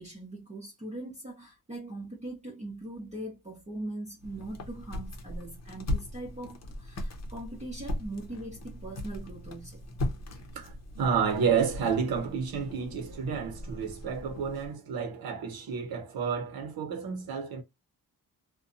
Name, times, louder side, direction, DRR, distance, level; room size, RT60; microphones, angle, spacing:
voice 1, 0.0-9.8, right 1 dB, 20° right, 0.8 m, -41 dB
sound 1, 4.2-14.7, left 1 dB, 45° left, 0.7 m, -38 dB
voice 2, 10.5-17.6, right 6 dB, 75° right, 0.7 m, -30 dB
2.6 x 2.2 x 2.5 m
wide cardioid pair, 150°, 36 cm